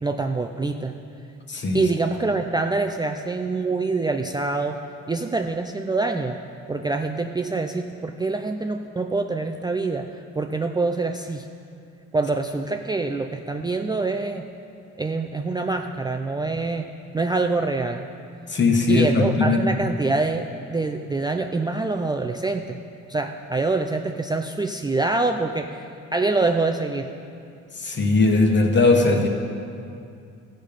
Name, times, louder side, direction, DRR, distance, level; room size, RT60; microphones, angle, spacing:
voice 1, 0.0-0.9 1.7-4.8 5.1-6.4 6.7-11.5 12.1-14.4 15.0-16.9 17.1-18.0 18.9-22.8 23.1-25.8 26.1-27.1, right 3 dB, 15° right, 4 dB, 0.4 m, -25 dB
voice 2, 1.5-1.9 18.5-19.8 27.7-29.3, left 3 dB, 40° left, 3 dB, 1.4 m, -19 dB
14.5 x 5.2 x 5.2 m, 2.5 s
cardioid pair, 90°, 30 cm